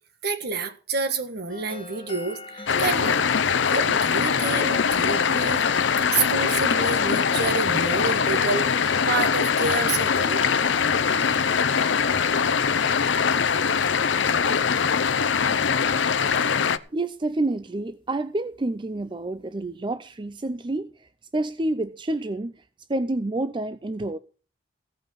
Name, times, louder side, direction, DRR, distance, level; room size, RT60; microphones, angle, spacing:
voice 1, 0.2-3.2 3.7-5.6 6.1-10.4, right 4 dB, 55° right, 1.7 m, -28 dB
sound 1, 1.5-14.7, left 3 dB, 30° left, 1.4 m, -44 dB
sound 2, 2.7-16.8, left 6 dB, 70° left, 0.7 m, -22 dB
voice 2, 16.9-22.6 22.9-24.2, right 2 dB, 25° right, 0.5 m, -28 dB
16.0 x 5.7 x 7.1 m
head